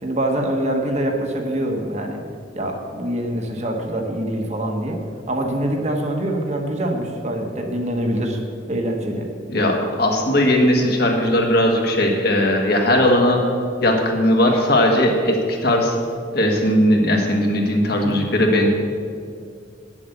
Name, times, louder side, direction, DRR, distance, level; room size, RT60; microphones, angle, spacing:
voice 1, 0.0-2.2 2.5-5.0 5.3-8.4 8.7-9.3 18.0-18.3, right 1 dB, 35° right, 1 dB, 1.2 m, -24 dB
voice 2, 9.5-13.4 13.8-16.0 16.3-18.7, left 1 dB, 50° left, 1 dB, 1.7 m, -18 dB
9.5 x 7.4 x 8.0 m, 2.2 s
head